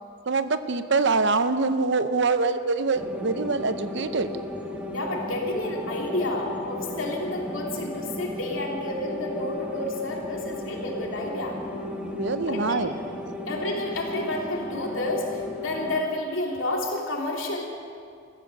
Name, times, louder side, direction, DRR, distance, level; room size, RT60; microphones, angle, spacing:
voice 1, 0.3-4.3 12.0-13.0, right 4 dB, 65° right, 12 dB, 0.7 m, -24 dB
sound 1, 2.9-16.0, left 1 dB, 5° right, 1.3 m, -35 dB
voice 2, 4.9-11.6 12.5-12.9 13.5-17.6, left 1 dB, 85° left, 0 dB, 2.7 m, -30 dB
15.0 x 14.5 x 6.3 m, 2.3 s
head